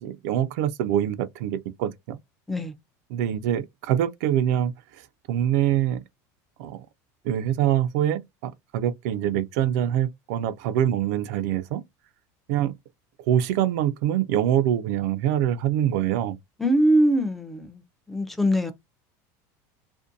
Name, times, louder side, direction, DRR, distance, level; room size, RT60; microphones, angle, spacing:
voice 1, 0.0-2.2 3.1-4.7 5.3-6.0 6.6-6.8 7.2-11.8 12.5-12.8 13.3-16.4, right 11 dB, 75° right, 0.4 m, -24 dB
voice 2, 16.6-17.8 18.1-18.7, equal, ahead, 0.4 m, -22 dB
2.5 x 2.1 x 2.5 m
supercardioid pair, 145°, 9 cm